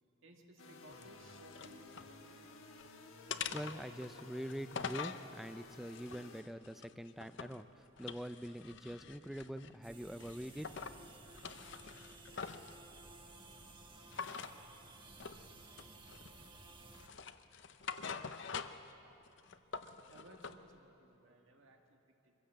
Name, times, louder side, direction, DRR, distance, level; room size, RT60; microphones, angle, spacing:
voice 1, 0.0-2.6 19.6-19.7 20.1-22.3, right 1 dB, 65° right, 2 dB, 1.7 m, -62 dB
sound 1, 0.6-6.4, left 3 dB, 80° left, 1.6 m, -55 dB
sound 2, 0.9-2.1 2.5-2.9 3.3-5.2 5.8-7.6 8.0-9.8 10.2-11.0 11.3-12.7 14.1-14.6 15.2-15.4 15.8-16.5 16.9-18.9 19.3-20.6, left 6 dB, 55° left, 0.7 m, -45 dB
voice 2, 3.5-10.7, equal, ahead, 12 dB, 0.4 m, -44 dB
sound 3, 9.8-17.1, right 2 dB, 20° right, 1.3 m, -56 dB
23.5 x 15.5 x 7.5 m, 3.0 s
head